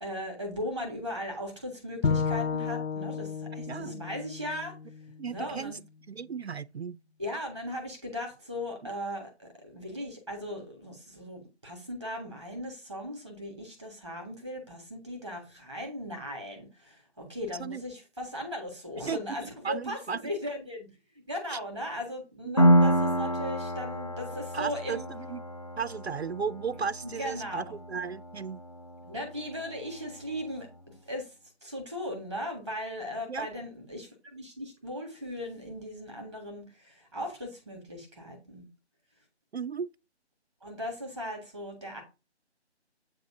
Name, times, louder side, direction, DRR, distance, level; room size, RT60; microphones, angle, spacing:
voice 1, 0.0-4.7 5.3-5.8 7.2-20.9 21.1-25.1 27.0-27.8 29.0-30.7 31.1-31.3 31.6-38.7 40.6-42.0, equal, ahead, 1.1 m, -38 dB
Bowed string instrument, 2.0-5.3, left 5 dB, 85° left, 0.6 m, -32 dB
voice 2, 3.7-4.0 5.2-5.8 6.1-7.0 17.6-17.8 19.1-19.2 19.6-20.2 21.5-21.6 22.4-22.8 24.5-25.4 25.8-28.6 33.3-33.5 39.5-39.9, right 6 dB, 65° right, 0.5 m, -35 dB
Piano, 22.6-30.0, equal, 30° left, 0.6 m, -28 dB
8.1 x 3.0 x 5.7 m
figure-of-eight pair, 155°, 34 cm